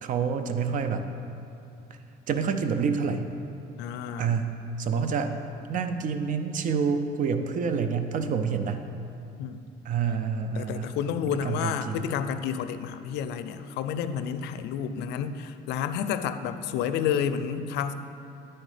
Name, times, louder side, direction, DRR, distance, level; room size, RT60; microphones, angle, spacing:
voice 1, 0.0-1.0 2.3-3.2 4.2-4.5 4.8-5.3 5.7-8.8 9.8-10.9 11.3-12.1, right 6 dB, 50° right, 8 dB, 0.6 m, -27 dB
voice 2, 3.8-4.4 9.4-9.6 10.6-17.9, left 8 dB, 80° left, 11 dB, 0.4 m, -30 dB
9.9 x 4.4 x 4.9 m, 2.7 s
cardioid pair, 110°, 17 cm